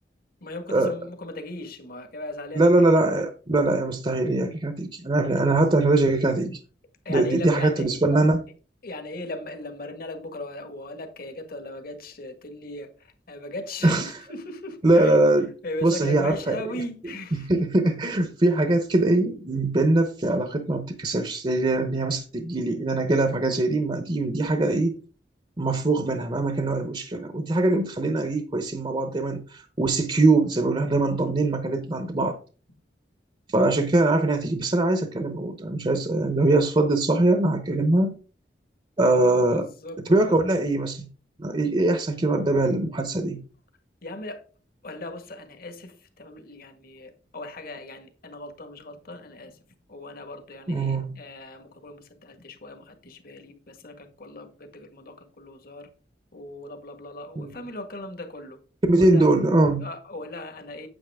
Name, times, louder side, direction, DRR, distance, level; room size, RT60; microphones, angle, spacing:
voice 1, 0.4-3.0 7.1-8.0 8.8-15.2 15.6-17.6 33.7-34.0 39.5-40.4 42.5-42.6 43.0-43.2 44.0-44.4 44.8-49.6 49.9-55.9 56.3-58.6 59.0-59.3 59.8-60.9, left 1 dB, 55° left, 1.7 m, -38 dB
voice 2, 2.6-6.6 7.1-8.4 13.8-14.1 14.8-15.5 15.8-16.6 17.3-25.0 25.6-32.4 33.5-38.1 39.0-39.7 40.0-41.1 41.4-43.4 50.7-51.2 57.4-57.6 58.8-59.9, right 2 dB, 30° right, 0.8 m, -22 dB
8.9 x 8.4 x 3.6 m
head